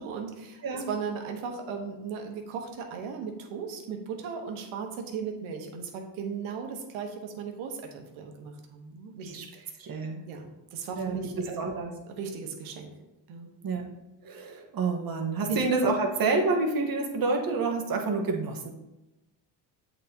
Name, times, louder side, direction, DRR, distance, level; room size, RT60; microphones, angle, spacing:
voice 1, 0.0-9.7 10.3-11.7 12.1-12.9 13.3-13.5 15.5-15.6, right 6 dB, 75° right, 3 dB, 1.2 m, -37 dB
voice 2, 9.8-10.2 11.0-11.9 13.6-13.9 14.2-18.7, right 3 dB, 45° right, 1 dB, 1.4 m, -28 dB
8.1 x 4.1 x 2.9 m, 0.99 s
supercardioid pair, 80°, 49 cm